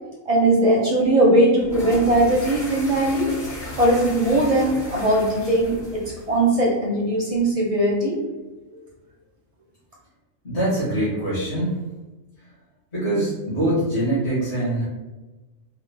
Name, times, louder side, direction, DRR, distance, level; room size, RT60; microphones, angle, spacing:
voice 1, 0.3-3.3 3.8-8.2, right 1 dB, 40° right, -3 dB, 0.5 m, -19 dB
sound 1, 1.6-6.6, left 1 dB, 75° left, 1.7 m, -35 dB
voice 2, 10.4-11.8 12.4-12.5 12.9-14.8, right 1 dB, 50° left, -11 dB, 1.6 m, -23 dB
3.8 x 2.0 x 3.3 m, 1.1 s
omnidirectional pair, 1.5 m